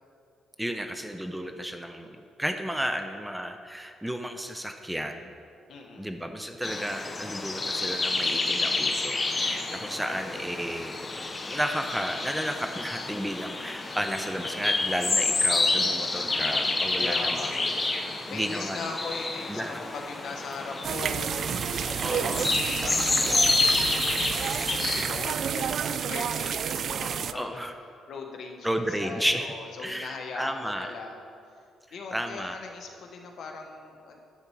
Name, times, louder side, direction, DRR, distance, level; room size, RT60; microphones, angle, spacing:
voice 1, 0.6-5.3 6.0-11.0 11.5-17.5 18.3-18.9 19.5-19.8 22.0-22.4 24.8-25.1 27.0-27.7 28.6-29.5 29.8-30.9 32.1-32.6, equal, 5° right, 6 dB, 0.6 m, -33 dB
voice 2, 5.7-6.1 10.0-10.4 13.9-14.0 17.0-17.9 18.3-27.7 28.1-31.2 31.9-34.2, left 4 dB, 65° left, 2 dB, 1.2 m, -40 dB
sound 1, 6.6-25.2, left 3 dB, 30° left, 0.8 m, -29 dB
sound 2, 20.8-27.3, right 7 dB, 60° right, 0.3 m, -30 dB
10.5 x 4.4 x 7.1 m, 2.4 s
cardioid pair, 90°, 0 cm